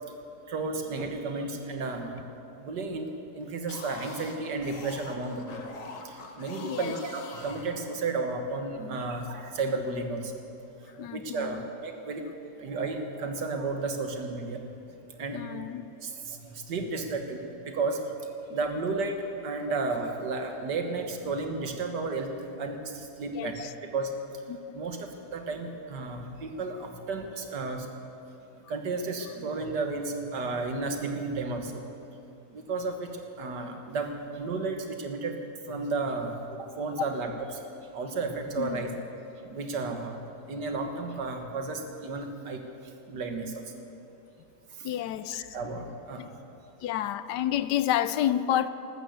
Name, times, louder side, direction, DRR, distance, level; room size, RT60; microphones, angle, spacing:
voice 1, 0.5-2.2 2.6-5.6 6.1-10.3 11.0-12.2 12.6-14.6 15.1-15.6 16.0-18.0 18.5-19.2 19.4-22.3 22.6-24.1 24.7-25.0 25.3-27.9 28.7-31.7 32.5-35.3 35.7-36.4 36.8-37.3 37.9-38.9 39.4-42.6 43.1-43.6 45.4-46.2, right 3 dB, 85° right, 5 dB, 2.0 m, -33 dB
sound 1, 3.5-8.3, left 3 dB, 55° left, 1.6 m, -44 dB
voice 2, 6.6-7.0 11.0-11.7 15.3-15.8 23.3-23.7 24.5-24.8 38.6-38.8 44.8-45.4 46.2-46.3 46.8-48.7, left 11 dB, 85° left, 14 dB, 1.2 m, -30 dB
13.0 x 12.5 x 8.1 m, 2.8 s
omnidirectional pair, 1.8 m